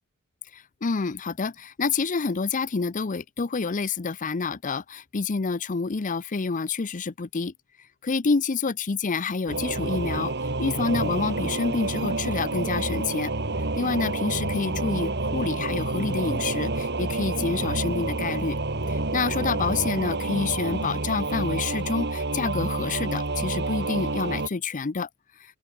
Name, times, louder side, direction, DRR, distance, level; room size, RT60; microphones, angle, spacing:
voice 1, 0.5-7.5 8.0-10.3 10.6-13.3 13.8-18.6 18.9-25.1, left 4 dB, 40° left, 0.6 m, -28 dB
Singing / Musical instrument, 9.5-24.5, right 2 dB, 55° right, 2.7 m, -28 dB
open air
head